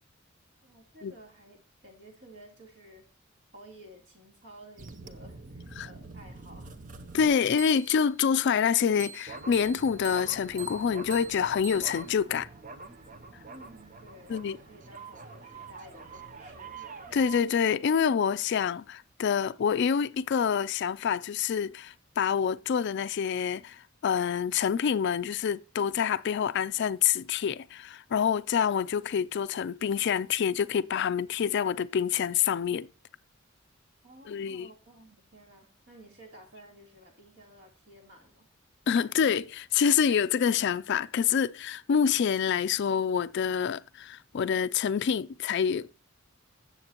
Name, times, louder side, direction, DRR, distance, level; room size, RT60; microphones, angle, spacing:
voice 1, 0.6-3.1 3.5-6.7 13.5-16.9 34.0-38.4, right 1 dB, 60° right, 3.2 m, -53 dB
sound 1, 4.8-8.1 9.0-17.4, right 4 dB, 40° right, 0.7 m, -45 dB
voice 2, 7.1-12.5 14.3-14.6 17.1-32.9 34.3-34.7 38.9-45.9, left 7 dB, 60° left, 0.4 m, -27 dB
16.5 x 7.1 x 2.9 m
head